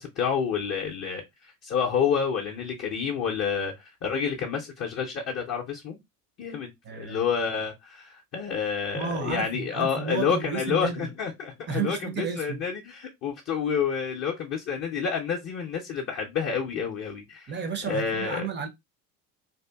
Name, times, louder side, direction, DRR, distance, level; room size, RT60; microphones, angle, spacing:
voice 1, 0.0-6.0 6.4-17.5 17.9-18.5, left 6 dB, 30° left, 0.6 m, -29 dB
voice 2, 6.8-7.3 8.9-11.1 11.7-12.6 17.5-18.7, right 5 dB, 25° right, 0.5 m, -32 dB
2.7 x 2.4 x 2.2 m
hypercardioid pair, 70°, 47 cm